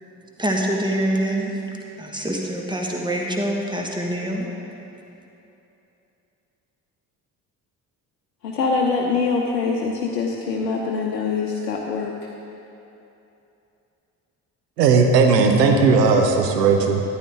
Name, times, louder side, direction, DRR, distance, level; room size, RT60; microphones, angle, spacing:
voice 1, 0.4-1.5 2.0-4.5, right 1 dB, 10° right, 0 dB, 1.6 m, -25 dB
voice 2, 8.4-12.1, left 4 dB, 75° left, 0 dB, 0.8 m, -24 dB
voice 3, 14.8-17.0, right 4 dB, 80° right, 4 dB, 0.9 m, -16 dB
13.5 x 9.7 x 3.6 m, 2.9 s
figure-of-eight pair, 45°, 48 cm